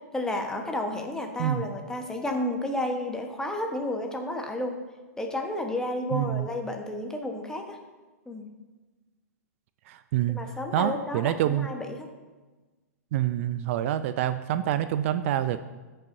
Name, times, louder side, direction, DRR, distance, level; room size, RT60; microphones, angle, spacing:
voice 1, 0.1-4.8 5.2-7.8 8.3-8.5 10.3-12.1, left 1 dB, 5° left, 3 dB, 1.1 m, -31 dB
voice 2, 6.1-6.5 9.9-10.4 10.7-11.7 13.1-15.6, right 12 dB, 55° right, 12 dB, 0.4 m, -26 dB
15.5 x 5.5 x 2.7 m, 1.2 s
hypercardioid pair, 120°, 9 cm